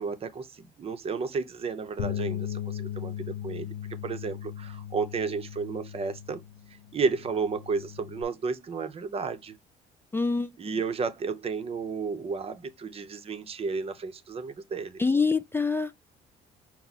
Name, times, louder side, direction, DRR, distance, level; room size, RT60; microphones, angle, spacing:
voice 1, 0.0-3.7 4.0-6.4 6.9-9.6 10.6-15.0, right 5 dB, 35° right, 0.7 m, -32 dB
Bass guitar, 2.0-8.2, left 10 dB, 80° left, 0.9 m, -37 dB
voice 2, 10.1-10.5 15.0-16.1, left 4 dB, 15° left, 0.3 m, -25 dB
5.8 x 2.1 x 4.0 m
cardioid pair, 110°, 17 cm